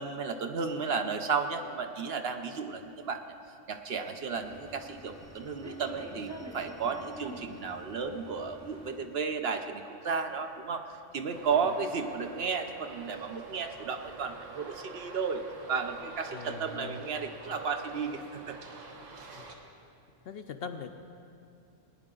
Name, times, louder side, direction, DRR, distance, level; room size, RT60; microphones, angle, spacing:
voice 1, 0.0-3.2 3.7-10.8 11.1-18.6, right 5 dB, 60° right, 6 dB, 0.9 m, -33 dB
sound 1, 4.3-9.4, right 1 dB, 20° right, 0.6 m, -47 dB
voice 2, 11.3-11.7 16.3-17.1 19.4-19.5 20.3-20.9, left 5 dB, 60° left, 7 dB, 0.7 m, -42 dB
Traffic noise roadway noise, 11.3-19.5, right 3 dB, 90° right, 1.5 m, -46 dB
20.0 x 9.8 x 3.8 m, 2.5 s
omnidirectional pair, 1.3 m